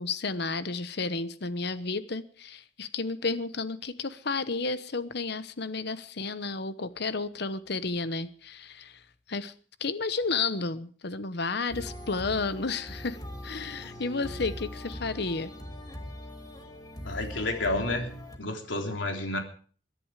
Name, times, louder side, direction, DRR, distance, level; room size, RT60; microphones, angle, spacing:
voice 1, 0.0-9.0 9.3-9.5 9.8-13.2 13.4-15.5, left 4 dB, 60° left, 14 dB, 1.0 m, -32 dB
sound 1, 11.7-18.4, left 1 dB, 20° left, 2.3 m, -41 dB
voice 2, 17.0-18.1 18.4-19.4, left 2 dB, 85° left, 3 dB, 3.5 m, -30 dB
22.5 x 11.0 x 4.9 m, 0.43 s
head